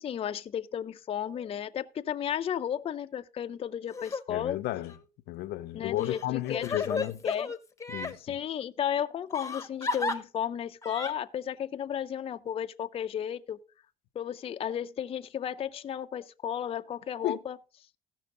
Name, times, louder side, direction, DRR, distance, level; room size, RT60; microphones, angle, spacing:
voice 1, 0.0-4.6 5.7-6.2 6.5-7.5 8.2-13.6 14.2-17.6, left 9 dB, 35° left, 0.4 m, -33 dB
Crying sobbing, 3.9-4.2 4.8-5.0 6.0-8.2 9.3-10.2 10.8-11.1, left 3 dB, 20° left, 0.8 m, -33 dB
voice 2, 4.3-5.0 5.3-7.2 7.9-8.4 17.2-17.4, left 15 dB, 80° left, 0.6 m, -33 dB
15.5 x 6.0 x 3.7 m
cardioid pair, 110°, 17 cm